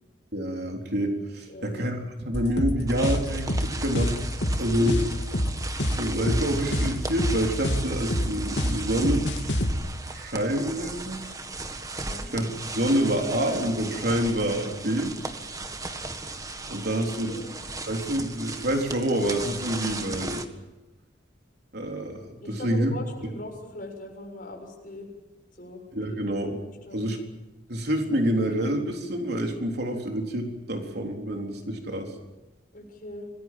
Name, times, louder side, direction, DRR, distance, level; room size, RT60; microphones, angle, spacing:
voice 1, 0.3-4.2 4.6-5.0 6.0-9.3 10.1-11.2 12.3-15.1 16.7-17.4 17.9-20.4 21.7-22.2 22.5-22.9 25.9-26.6 26.9-27.2 27.7-32.1, equal, 65° right, 2 dB, 3.9 m, -27 dB
voice 2, 1.5-1.9 4.7-5.0 11.9-12.3 16.8-17.5 22.4-25.1 25.5-26.2 26.9-27.1 32.7-33.3, left 1 dB, 50° left, 1 dB, 7.2 m, -40 dB
sound 1, 2.3-9.7, equal, 80° left, 2.8 m, -26 dB
sound 2, 2.9-20.5, right 3 dB, 20° right, 1.7 m, -37 dB
26.5 x 20.5 x 7.7 m, 1.1 s
head